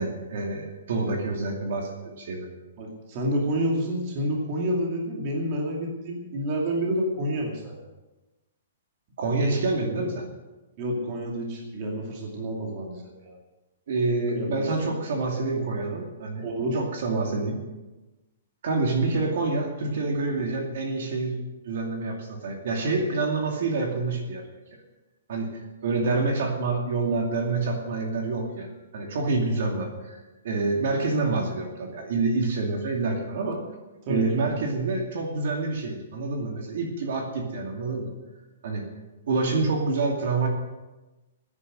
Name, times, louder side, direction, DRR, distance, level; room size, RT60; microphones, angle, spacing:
voice 1, 0.0-2.5 9.2-10.3 13.9-16.5 16.7-17.5 18.6-24.4 25.3-25.5 25.8-33.6 34.1-38.1 38.6-38.8 39.3-40.5, right 3 dB, 50° right, 1 dB, 2.5 m, -27 dB
voice 2, 2.8-7.8 10.8-13.4 14.3-14.9 16.4-16.8 34.0-34.2, equal, 25° right, -1 dB, 2.4 m, -29 dB
16.5 x 9.9 x 6.4 m, 1.1 s
hypercardioid pair, 180°, 0 cm